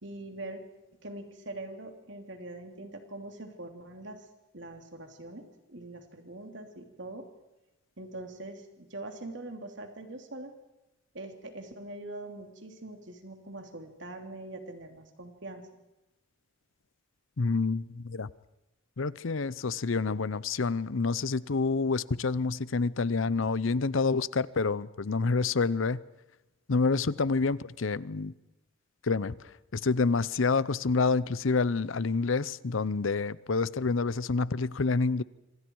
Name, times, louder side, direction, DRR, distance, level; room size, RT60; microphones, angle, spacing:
voice 1, 0.0-0.6 1.0-4.2 4.5-7.3 8.0-10.5 11.1-15.7, right 2 dB, 60° right, 3.1 m, -43 dB
voice 2, 17.4-18.3 19.0-26.0 26.7-28.3 29.0-29.4 29.7-35.2, left 4 dB, 75° left, 0.7 m, -28 dB
26.0 x 26.0 x 4.7 m
head